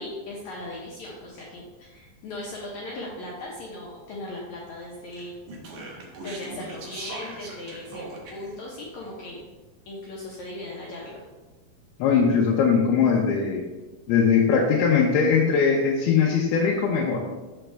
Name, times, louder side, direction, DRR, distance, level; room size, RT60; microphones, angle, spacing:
voice 1, 0.0-5.3 6.2-9.4 9.9-11.2, left 1 dB, 70° left, -4 dB, 1.8 m, -38 dB
Speech, 5.1-8.6, right 2 dB, 75° right, 1.3 m, -40 dB
voice 2, 12.0-13.6 14.1-17.2, left 6 dB, 90° left, -2 dB, 2.7 m, -20 dB
6.8 x 6.2 x 3.4 m, 1.2 s
omnidirectional pair, 4.4 m